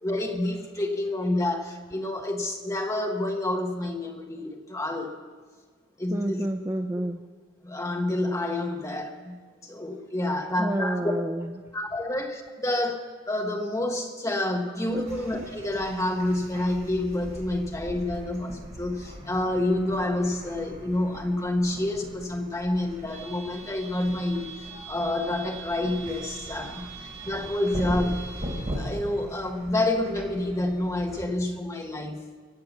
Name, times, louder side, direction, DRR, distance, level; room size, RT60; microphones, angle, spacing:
voice 1, 0.0-5.1 6.0-6.5 7.6-11.1 11.7-26.9 27.2-28.3 28.7-32.3, left 1 dB, 15° left, 2 dB, 1.3 m, -28 dB
voice 2, 6.1-7.2 10.6-11.5 14.9-15.1 26.7-26.9 27.2-27.3, right 1 dB, 15° right, 6 dB, 0.3 m, -30 dB
sound 1, 14.9-31.3, right 1 dB, 30° right, 3.2 m, -39 dB
23.0 x 7.7 x 7.1 m, 1.5 s
head